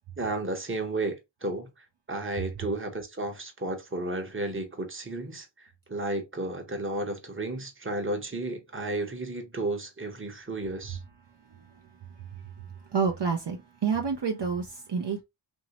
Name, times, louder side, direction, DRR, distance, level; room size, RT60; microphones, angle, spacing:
voice 1, 0.2-1.7 2.1-11.0, right 2 dB, 25° right, 0.9 m, -33 dB
voice 2, 12.2-12.7 12.9-15.2, right 5 dB, 55° right, 0.6 m, -29 dB
3.0 x 2.7 x 2.8 m
wide cardioid pair, 45°, 49 cm